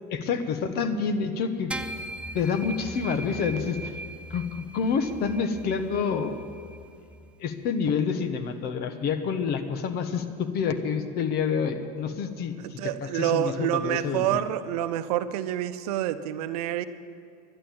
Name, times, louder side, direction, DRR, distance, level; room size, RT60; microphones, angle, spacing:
voice 1, 0.1-1.7 2.3-4.0 4.3-6.4 7.4-14.4, left 6 dB, 55° left, 9 dB, 1.3 m, -28 dB
sound 1, 1.7-7.3, right 1 dB, 5° right, 0.7 m, -40 dB
voice 2, 12.6-16.9, right 12 dB, 80° right, 12 dB, 0.7 m, -28 dB
11.5 x 11.5 x 8.7 m, 2.4 s
supercardioid pair, 95°, 20 cm